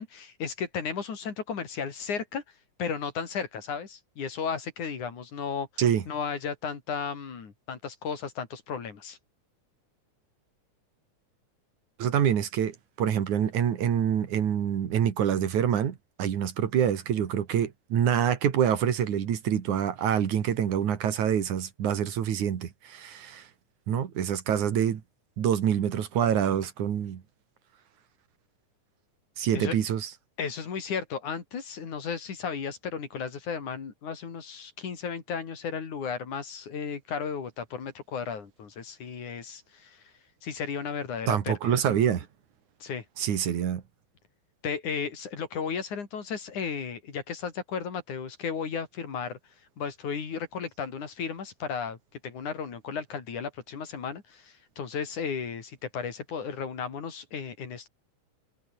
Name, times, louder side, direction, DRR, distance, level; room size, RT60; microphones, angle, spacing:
voice 1, 0.0-2.4 2.8-9.2 29.5-29.8 30.4-40.0 40.4-41.8 42.8-43.0 44.6-49.4 49.8-52.0 52.2-57.9, left 6 dB, 75° left, 4.9 m, -34 dB
voice 2, 12.0-23.4 23.9-25.0 25.4-27.2 29.4-30.0 41.3-42.3 43.2-43.8, right 9 dB, 75° right, 3.4 m, -26 dB
omnidirectional pair, 3.5 m